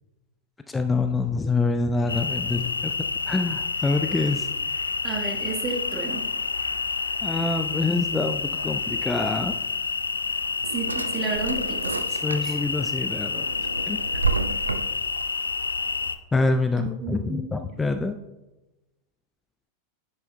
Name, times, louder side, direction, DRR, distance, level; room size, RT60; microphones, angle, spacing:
voice 1, 0.7-2.9 3.3-4.5 7.2-9.5 12.1-13.5 13.9-14.0 16.3-18.1, left 3 dB, 10° left, 8 dB, 0.4 m, -26 dB
sound 1, 2.1-16.2, left 4 dB, 75° left, 0.4 m, -29 dB
voice 2, 5.0-6.3 10.7-12.1 12.4-12.6 16.8-17.8, right 3 dB, 30° right, 2 dB, 1.4 m, -32 dB
Drawer open or close, 10.2-12.7 13.2-15.2, right 4 dB, 80° right, 0.4 m, -30 dB
10.5 x 8.6 x 2.2 m, 1.1 s
figure-of-eight pair, 90°, 0 cm